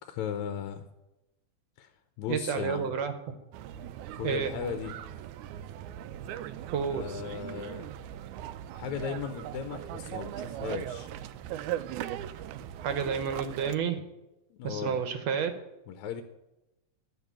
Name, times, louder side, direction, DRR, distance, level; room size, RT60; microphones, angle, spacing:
voice 1, 0.0-0.9 1.8-1.9 2.2-2.9 4.1-4.9 6.9-7.9 8.7-11.1 14.5-15.0 15.9-16.2, left 8 dB, 80° left, 8 dB, 2.1 m, -36 dB
voice 2, 2.3-3.2 4.2-4.5 6.7-7.1 12.8-14.0 14.6-15.5, right 7 dB, 70° right, 8 dB, 2.0 m, -30 dB
sound 1, 3.5-13.8, right 11 dB, 85° right, 2.1 m, -39 dB
12.0 x 6.8 x 8.8 m, 0.98 s
omnidirectional pair, 3.4 m